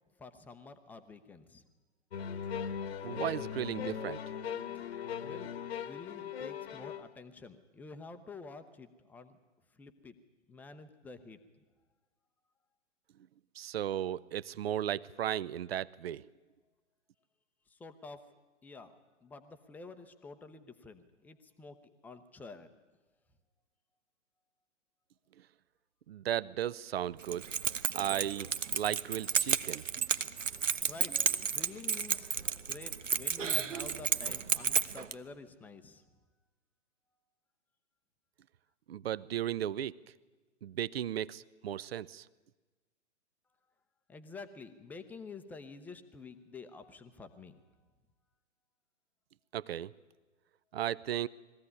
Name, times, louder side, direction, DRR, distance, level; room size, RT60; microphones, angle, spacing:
voice 1, 0.2-1.6 5.2-5.5 5.8-9.4 9.8-10.1 10.5-11.4 17.7-18.2 18.6-18.9 19.2-21.8 22.0-22.7 30.8-32.3 32.5-36.0 44.1-47.5, left 4 dB, 5° left, 9 dB, 0.6 m, -49 dB
sound 1, 2.1-7.1, left 7 dB, 60° left, 1.2 m, -39 dB
voice 2, 3.0-4.2 13.6-16.2 26.1-27.5 27.9-29.8 38.9-39.9 40.6-42.3 49.5-49.9 50.7-51.3, right 11 dB, 55° right, 19 dB, 0.6 m, -35 dB
Keys jangling, 27.2-35.1, right 6 dB, 75° right, 0.9 m, -32 dB
21.0 x 15.0 x 9.6 m, 1.2 s
figure-of-eight pair, 120°, 37 cm